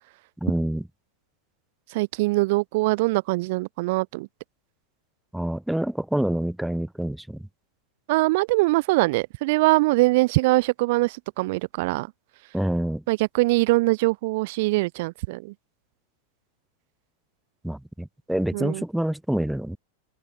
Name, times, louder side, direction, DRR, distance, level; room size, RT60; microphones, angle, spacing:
voice 1, 0.4-0.8 5.3-7.4 12.5-13.0 17.6-19.8, right 1 dB, ahead, 0.7 m, -27 dB
voice 2, 1.9-4.3 8.1-12.1 13.1-15.5 18.5-18.8, right 22 dB, 50° right, 0.4 m, -22 dB
open air
figure-of-eight pair, 90°, 0 cm